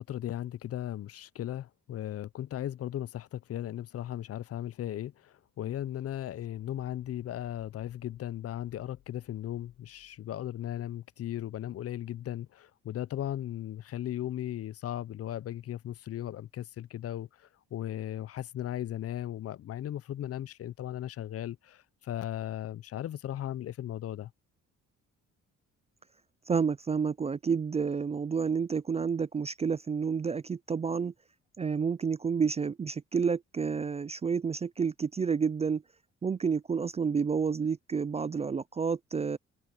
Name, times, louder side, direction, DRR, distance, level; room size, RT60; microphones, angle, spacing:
voice 1, 0.0-24.3, left 12 dB, 50° left, 0.5 m, -37 dB
sound 1, 5.1-11.6, left 13 dB, 85° left, 6.0 m, -66 dB
voice 2, 26.5-31.1 31.6-35.8 36.2-39.4, right 6 dB, 20° right, 0.3 m, -30 dB
cardioid pair, 90°, 30 cm